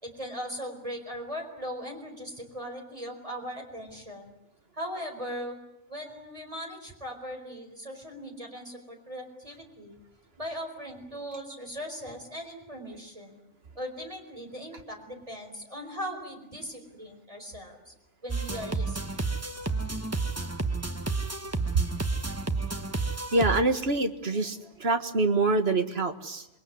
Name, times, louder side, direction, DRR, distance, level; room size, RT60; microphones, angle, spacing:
voice 1, 0.0-4.3 4.7-5.6 5.9-10.0 10.4-13.4 13.7-17.9 18.2-19.2, equal, 30° right, 3 dB, 4.6 m, -39 dB
sound 1, 18.3-23.6, right 3 dB, 15° right, 1.2 m, -31 dB
voice 2, 23.3-26.5, right 2 dB, 60° right, 8 dB, 1.9 m, -25 dB
27.5 x 21.0 x 9.7 m, 0.87 s
omnidirectional pair, 1.2 m